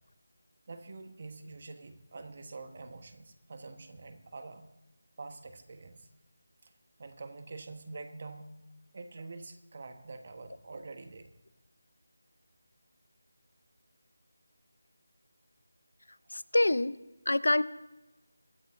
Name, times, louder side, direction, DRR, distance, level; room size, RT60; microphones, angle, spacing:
voice 1, 0.7-4.7 5.2-6.1 6.6-6.7 7.0-8.5 8.9-11.3 16.3-16.4, right 3 dB, 35° right, 8 dB, 1.3 m, -46 dB
voice 2, 16.3-17.0 17.3-17.6, left 2 dB, 85° left, 17 dB, 0.7 m, -26 dB
22.5 x 13.0 x 2.7 m, 1.0 s
figure-of-eight pair, 175°, 0 cm